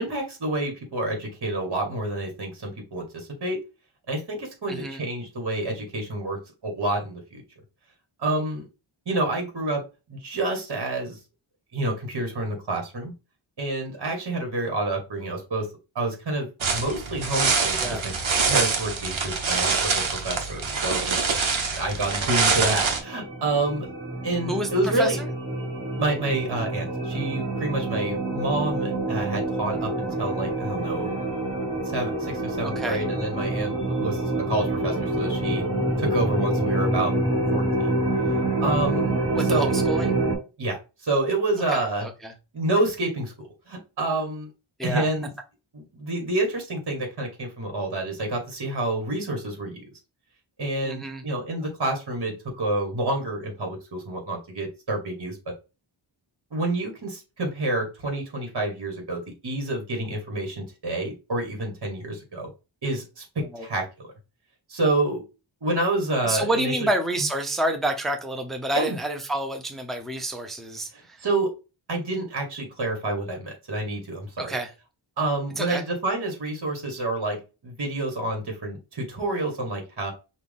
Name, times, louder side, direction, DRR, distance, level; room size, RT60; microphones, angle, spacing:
voice 1, 0.0-3.6 4.1-7.4 8.2-8.7 9.0-9.8 10.1-11.2 11.7-13.1 13.6-15.7 15.9-18.0 18.5-21.2 21.7-23.9 24.2-25.2 26.0-31.1 31.8-35.7 36.0-37.1 37.5-37.9 38.6-39.1 39.4-39.7 40.6-42.1 42.5-44.5 44.8-45.3 45.7-49.8 50.6-55.5 56.5-62.5 62.8-63.8 64.7-65.2 65.6-66.9 68.7-68.9 70.9-71.5 71.9-74.5 75.2-80.1, right 2 dB, 55° right, 1.6 m, -28 dB
voice 2, 4.7-5.0 17.8-18.0 24.5-25.3 32.6-33.0 39.4-40.1 41.7-42.3 44.8-45.0 50.9-51.2 63.5-63.7 66.2-71.2 74.4-74.7 75.6-75.8, right 1 dB, ahead, 0.6 m, -29 dB
sound 1, 16.6-23.0, right 5 dB, 75° right, 1.0 m, -25 dB
sound 2, 22.6-40.3, right 2 dB, 25° right, 2.2 m, -27 dB
5.9 x 2.4 x 3.6 m
wide cardioid pair, 105°, 48 cm